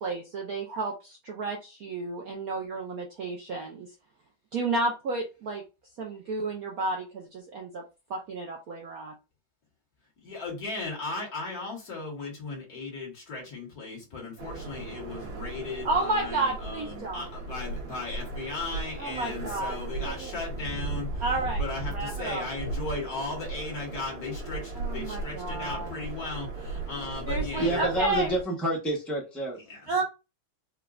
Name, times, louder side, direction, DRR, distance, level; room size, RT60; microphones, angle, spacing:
voice 1, 0.0-3.9 4.5-5.6 6.0-7.8 8.1-9.1 15.8-17.3 19.0-19.7 20.0-20.3 21.2-21.7 21.9-22.4 24.8-25.9 27.3-28.3 29.9-30.0, right 2 dB, 70° right, 0.9 m, -31 dB
voice 2, 10.2-27.9 29.7-30.0, left 3 dB, 50° left, 1.9 m, -37 dB
sound 1, 14.4-28.4, right 3 dB, 85° right, 2.2 m, -36 dB
voice 3, 27.6-29.6, right 1 dB, ahead, 0.3 m, -29 dB
5.1 x 2.3 x 2.4 m
omnidirectional pair, 2.2 m